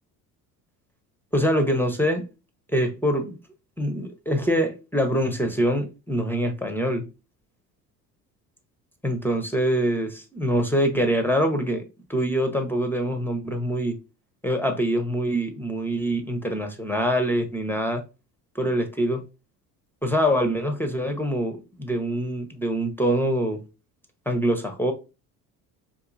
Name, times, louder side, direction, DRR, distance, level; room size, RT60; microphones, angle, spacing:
voice 1, 1.3-2.3 2.7-3.4 3.8-7.1 9.0-11.8 12.1-13.9 14.4-18.0 18.5-19.2 20.0-23.6 24.3-24.9, equal, 5° left, 0.6 m, -24 dB
3.8 x 2.6 x 2.5 m
hypercardioid pair, 60°, 47 cm